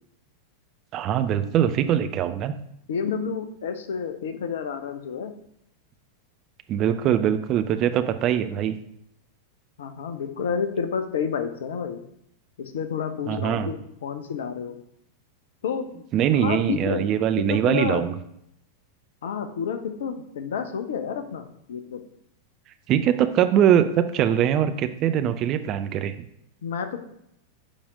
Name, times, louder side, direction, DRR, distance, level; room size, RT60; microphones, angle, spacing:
voice 1, 0.9-2.6 6.7-8.8 13.3-13.7 16.1-18.1 22.9-26.1, right 10 dB, 35° right, 10 dB, 0.6 m, -22 dB
voice 2, 2.9-5.3 9.8-12.0 12.6-14.8 15.6-15.9 16.4-17.1 17.5-18.0 19.2-22.0 26.6-27.0, left 6 dB, 60° left, 8 dB, 0.9 m, -30 dB
7.2 x 5.1 x 5.1 m, 0.74 s
figure-of-eight pair, 90°, 0 cm